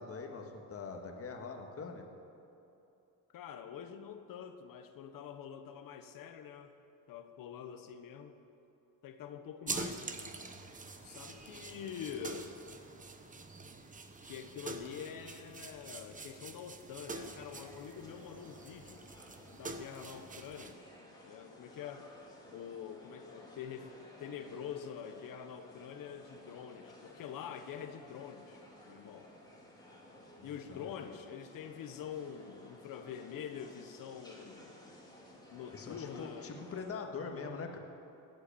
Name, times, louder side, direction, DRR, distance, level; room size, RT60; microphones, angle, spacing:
voice 1, 0.0-2.1 30.4-31.1 35.7-37.8, left 4 dB, 40° left, 3 dB, 1.7 m, -43 dB
voice 2, 3.3-6.8 7.1-8.4 9.0-10.1 11.0-12.6 14.2-19.0 19.5-20.8 21.2-22.1 22.5-28.6 28.9-29.4 30.4-35.0 35.3-36.5, left 8 dB, 65° left, 8 dB, 1.1 m, -46 dB
sound 1, 9.7-20.7, right 3 dB, 20° right, 1.0 m, -45 dB
sound 2, 17.1-36.8, left 1 dB, 10° left, 3.1 m, -56 dB
17.5 x 8.1 x 8.6 m, 2.8 s
cardioid pair, 125°, 36 cm